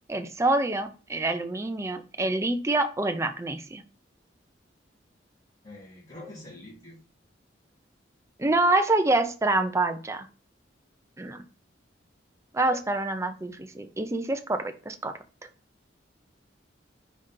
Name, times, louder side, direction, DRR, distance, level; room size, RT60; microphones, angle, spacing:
voice 1, 0.1-3.8 8.4-10.3 11.2-11.4 12.5-15.1, right 2 dB, 15° right, 8 dB, 0.5 m, -26 dB
voice 2, 5.6-7.0, left 1 dB, 40° left, -9 dB, 1.7 m, -45 dB
5.0 x 2.8 x 3.6 m, 0.34 s
head